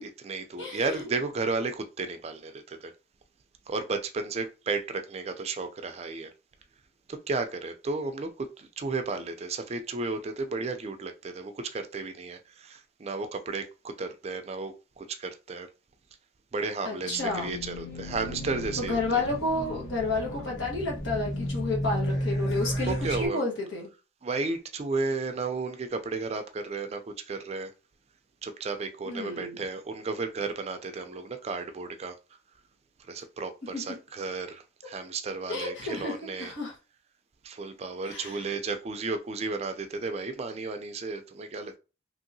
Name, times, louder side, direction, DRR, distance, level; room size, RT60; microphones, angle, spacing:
voice 1, 0.0-2.9 3.7-6.3 7.1-15.7 16.5-19.2 22.9-23.4 24.2-27.7 28.4-32.2 33.1-36.5 37.4-41.8, right 3 dB, 35° right, 0.3 m, -33 dB
voice 2, 0.6-1.0 16.8-17.5 18.8-23.9 29.1-29.6 33.7-33.8 35.5-36.7 38.0-38.4, left 3 dB, 85° left, 1.2 m, -31 dB
Race car auto racing / Alarm, 17.0-23.3, equal, 60° left, 1.1 m, -33 dB
3.0 x 2.7 x 2.6 m
head